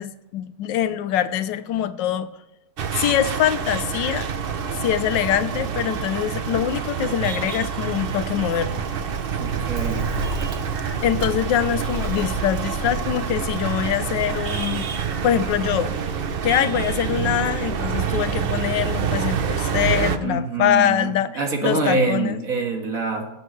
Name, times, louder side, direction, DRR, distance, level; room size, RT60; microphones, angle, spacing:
voice 1, 0.0-2.3 2.9-4.3 4.8-8.8 11.0-14.9 15.2-15.9 16.4-22.4, left 10 dB, 90° left, 13 dB, 1.3 m, -23 dB
sound 1, 2.8-20.2, right 7 dB, 65° right, 0.5 m, -27 dB
Bird, 8.5-16.3, right 3 dB, 35° right, 0.8 m, -33 dB
voice 2, 9.4-10.1 20.2-23.3, right 3 dB, 50° right, 2 dB, 2.0 m, -25 dB
19.5 x 8.0 x 3.2 m, 0.94 s
omnidirectional pair, 1.9 m